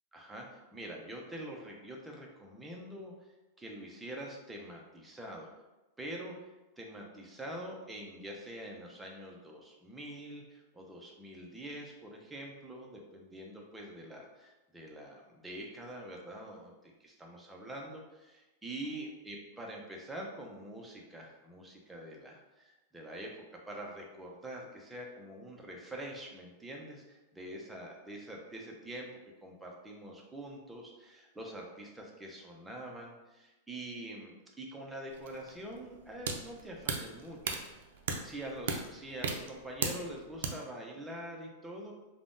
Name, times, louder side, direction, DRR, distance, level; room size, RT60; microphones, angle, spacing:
voice 1, 0.1-3.1 3.6-5.5 6.0-6.4 6.8-37.9 38.2-41.9, right 1 dB, 5° right, -1 dB, 0.4 m, -45 dB
sound 1, 35.1-40.5, right 5 dB, 75° right, 0.4 m, -37 dB
3.4 x 2.0 x 2.5 m, 1.0 s
supercardioid pair, 170°, 0 cm